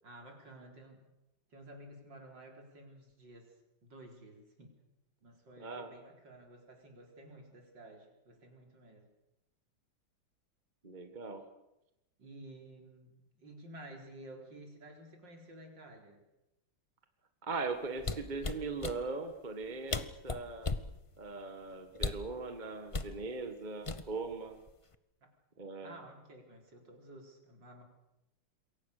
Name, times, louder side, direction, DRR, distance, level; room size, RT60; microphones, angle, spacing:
voice 1, 0.0-1.0 1.5-3.5 3.8-4.8 5.2-9.1 12.2-16.2 25.2-25.3 25.8-27.8, right 1 dB, 60° right, 2 dB, 4.9 m, -53 dB
voice 2, 5.6-5.9 10.8-11.4 17.4-20.7 21.2-24.6 25.6-26.0, right 3 dB, 25° right, 6 dB, 1.7 m, -40 dB
sound 1, 18.0-19.0 19.6-19.7 19.9-20.9 21.9-22.3 22.9-23.1 23.9-24.3 24.7-24.9, left 3 dB, 60° left, 0.3 m, -36 dB
27.5 x 22.5 x 6.8 m, 0.91 s
omnidirectional pair, 2.3 m